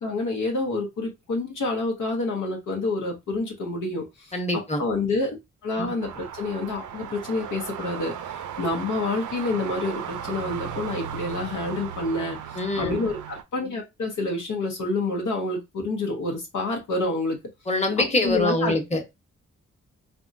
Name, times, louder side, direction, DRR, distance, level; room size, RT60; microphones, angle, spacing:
voice 1, 0.0-4.3 4.8-5.4 5.6-17.4 18.0-18.7, left 2 dB, 75° left, 1.0 m, -28 dB
voice 2, 4.3-4.8 5.8-5.9 12.6-13.0 17.7-19.0, left 2 dB, 20° left, 1.1 m, -24 dB
sound 1, 6.0-13.4, right 8 dB, 75° right, 0.5 m, -36 dB
3.4 x 2.2 x 2.6 m
supercardioid pair, 50°, 31 cm